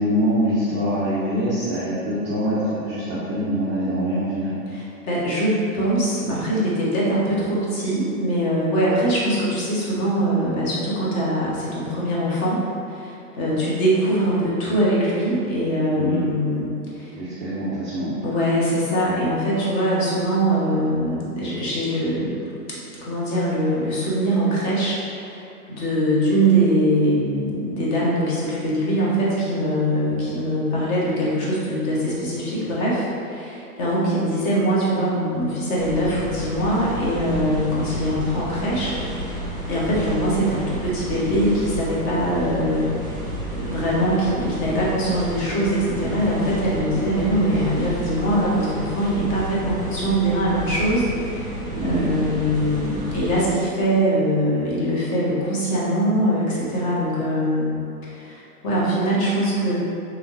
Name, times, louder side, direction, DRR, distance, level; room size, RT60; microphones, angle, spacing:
voice 1, 0.0-4.6 15.9-16.2 17.1-18.1 51.7-52.1, equal, 20° right, -11 dB, 0.3 m, -24 dB
voice 2, 4.7-12.6 12.9-17.1 18.2-22.5 23.0-39.4 39.7-42.9 43.6-51.5 51.8-57.8 58.1-59.7, right 1 dB, 35° left, -7 dB, 1.0 m, -22 dB
sound 1, 35.8-53.4, right 1 dB, 5° left, 0.8 m, -31 dB
3.4 x 2.9 x 2.5 m, 2.5 s
hypercardioid pair, 120°, 45 cm